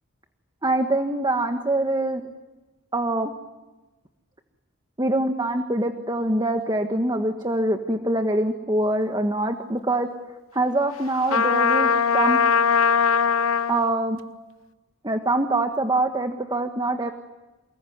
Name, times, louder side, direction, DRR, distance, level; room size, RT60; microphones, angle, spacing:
voice 1, 0.6-2.2 2.9-3.3 5.0-10.1 10.5-12.4 13.7-14.2 15.0-17.1, right 2 dB, 20° right, 5 dB, 1.6 m, -24 dB
Trumpet, 11.3-13.8, left 6 dB, 80° left, 1.1 m, -20 dB
29.0 x 21.0 x 9.4 m, 1.1 s
head